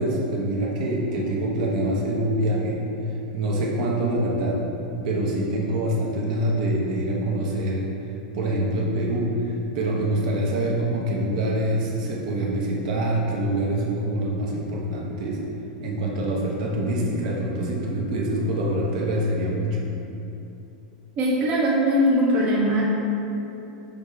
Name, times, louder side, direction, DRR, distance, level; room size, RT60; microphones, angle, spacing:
voice 1, 0.0-2.8 3.3-4.6 5.0-7.9 8.3-15.4 15.8-19.8, right 1 dB, 65° right, -3 dB, 0.8 m, -25 dB
voice 2, 21.2-22.8, equal, 30° right, -4 dB, 0.5 m, -20 dB
6.3 x 2.3 x 3.2 m, 2.9 s
supercardioid pair, 135°, 4 cm